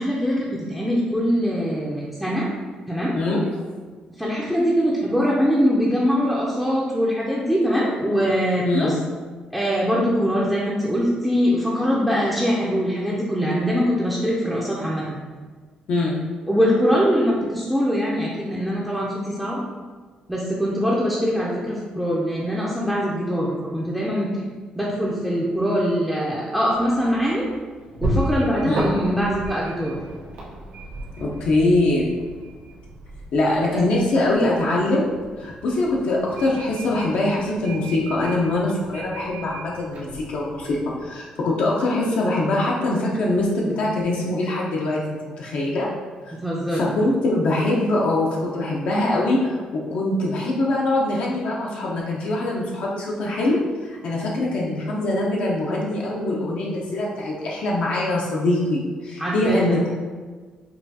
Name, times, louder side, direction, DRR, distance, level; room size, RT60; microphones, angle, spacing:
voice 1, 0.0-2.5 2.9-3.1 4.2-8.9 9.5-15.2 16.5-19.6 20.3-24.3 24.7-27.5 28.0-29.9 33.7-33.8 46.4-46.9 59.2-59.8, equal, ahead, -6 dB, 0.5 m, -22 dB
sound 1, 26.7-41.1, right 1 dB, 90° right, 1.0 m, -34 dB
voice 2, 31.2-32.1 33.3-35.1 35.4-45.9 46.2-46.3 46.7-53.6 53.8-59.9, left 2 dB, 65° left, -3 dB, 0.6 m, -23 dB
5.4 x 2.3 x 2.7 m, 1.4 s
cardioid pair, 130°, 2 cm